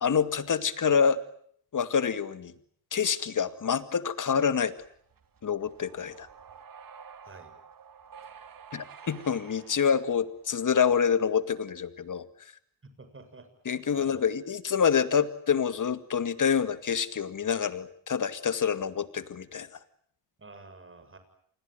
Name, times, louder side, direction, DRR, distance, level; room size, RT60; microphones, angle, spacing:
voice 1, 0.0-1.2 1.7-2.5 2.9-4.7 5.4-6.3 8.7-12.5 13.6-19.7, left 7 dB, 40° left, 13 dB, 2.2 m, -27 dB
sound 1, 4.8-10.9, right 7 dB, 40° right, 2.8 m, -50 dB
voice 2, 13.0-13.5 13.9-14.2 20.4-21.2, right 3 dB, 25° right, 8 dB, 7.2 m, -48 dB
27.5 x 20.5 x 9.2 m, 0.63 s
supercardioid pair, 75°, 50 cm